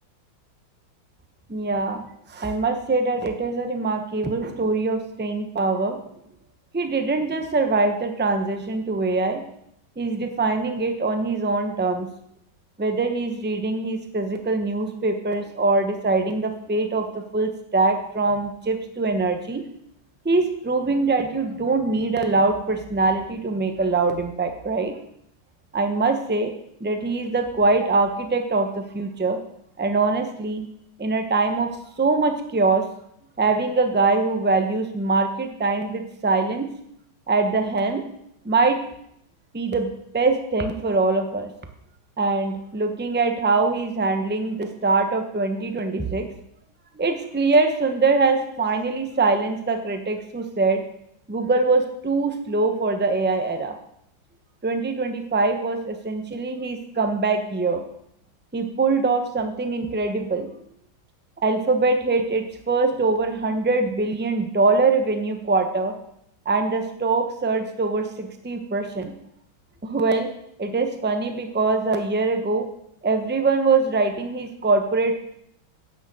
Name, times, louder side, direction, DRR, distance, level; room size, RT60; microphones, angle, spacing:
voice 1, 1.5-2.0 2.3-6.0 6.7-9.4 10.0-12.1 12.8-19.6 20.2-24.9 25.7-26.5 26.8-29.4 29.8-30.6 31.0-31.7 32.0-32.9 33.4-36.7 37.3-38.0 38.4-38.8 39.5-41.5 42.2-46.3 47.0-50.8 51.3-53.8 54.6-57.8 58.5-60.5 61.4-65.9 66.4-69.1 69.8-70.3 70.6-72.7 73.0-75.2, right 3 dB, 15° right, 6 dB, 0.4 m, -23 dB
11.0 x 6.5 x 7.6 m, 0.74 s
omnidirectional pair, 2.2 m